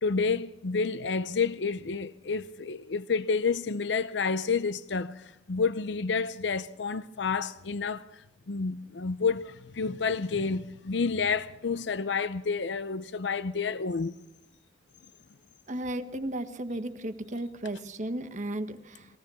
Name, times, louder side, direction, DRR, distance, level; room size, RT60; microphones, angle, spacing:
voice 1, 0.0-14.2, left 5 dB, 65° left, 0.6 m, -30 dB
voice 2, 15.7-19.1, right 1 dB, 40° right, 1.4 m, -34 dB
21.5 x 17.0 x 7.0 m
head